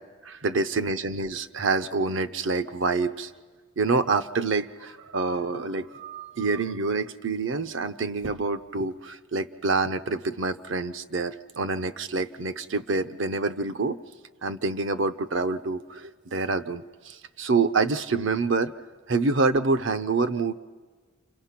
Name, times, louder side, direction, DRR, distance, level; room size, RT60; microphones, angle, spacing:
voice 1, 0.2-3.3 3.8-14.0 14.4-18.7 19.1-20.5, right 3 dB, 65° right, 12 dB, 0.7 m, -27 dB
29.0 x 27.0 x 5.9 m, 1.5 s
head